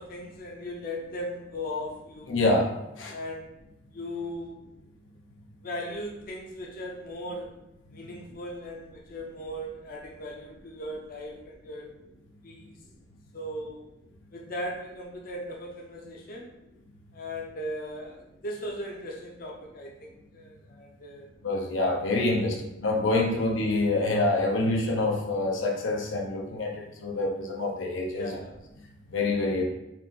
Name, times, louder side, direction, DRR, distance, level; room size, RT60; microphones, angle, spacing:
voice 1, 0.0-2.4 3.1-3.5 3.9-4.6 5.6-7.6 7.9-11.9 12.4-12.8 13.3-13.8 14.3-16.5 17.1-21.3 22.4-22.6 23.3-23.4 28.1-28.6, left 1 dB, 50° left, -1 dB, 0.6 m, -38 dB
voice 2, 2.3-2.7 3.0-3.1 21.4-22.5 22.8-26.7 27.0-28.3 29.1-29.6, left 2 dB, 90° left, 0 dB, 0.7 m, -26 dB
4.3 x 2.5 x 3.7 m, 0.90 s
head